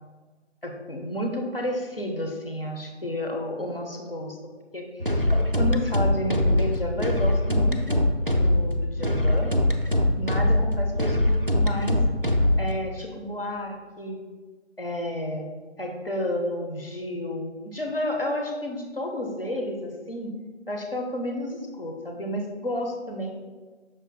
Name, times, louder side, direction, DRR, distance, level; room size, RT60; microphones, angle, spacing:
voice 1, 0.6-4.4 4.7-5.3 5.5-9.5 10.2-12.0 12.6-14.2 14.8-15.5 15.8-20.3 20.7-23.3, left 1 dB, 50° left, 1 dB, 0.9 m, -31 dB
sound 1, 5.0-12.7, left 1 dB, 50° right, 0.4 m, -22 dB
7.2 x 6.5 x 2.2 m, 1.3 s
figure-of-eight pair, 180°, 36 cm